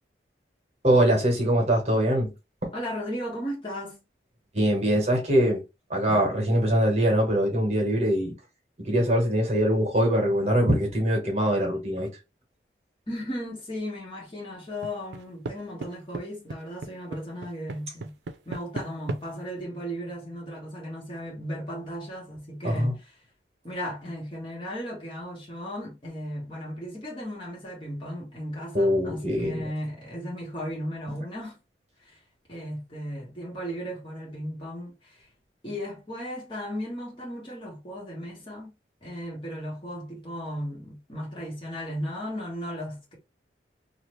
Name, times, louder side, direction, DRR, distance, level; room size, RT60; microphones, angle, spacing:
voice 1, 0.8-2.3 4.5-5.6 5.9-8.3 8.8-12.1 22.6-22.9 28.7-29.6, equal, 35° right, 1.1 m, -23 dB
voice 2, 2.7-4.0 13.1-18.1 18.4-23.2 23.6-31.6 32.0-32.2 32.5-35.2 35.6-38.7 39.0-43.1, equal, 30° left, 1.3 m, -36 dB
sound 1, 14.8-15.5 15.8-16.2 16.5-19.2, right 3 dB, 90° right, 0.5 m, -34 dB
2.8 x 2.4 x 3.1 m
head